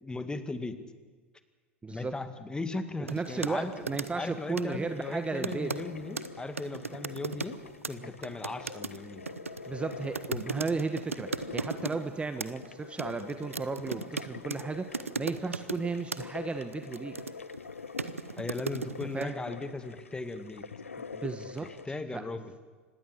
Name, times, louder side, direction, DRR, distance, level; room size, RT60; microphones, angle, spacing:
voice 1, 0.0-0.8 1.9-3.7 4.2-7.6 7.9-9.3 18.4-20.7 21.6-22.5, left 3 dB, 10° left, 10 dB, 2.1 m, -37 dB
voice 2, 1.8-2.2 3.1-5.7 8.0-8.1 9.7-17.2 19.1-19.4 21.0-21.7 22.1-22.2, right 4 dB, 15° right, 9 dB, 1.3 m, -34 dB
sound 1, 3.1-3.6 3.9-4.3 4.6-4.8 5.4-5.8 6.2-6.3 6.5-7.6 7.8-8.0 8.2-12.0 12.4-12.7 13.0-14.6 14.9-15.8 16.1-16.2 16.7-17.6 18.0-19.2, right 4 dB, 90° right, 0.9 m, -36 dB
sound 2, 3.3-21.9, left 5 dB, 85° left, 0.6 m, -45 dB
25.5 x 19.5 x 7.9 m, 1.4 s
figure-of-eight pair, 80°, 7 cm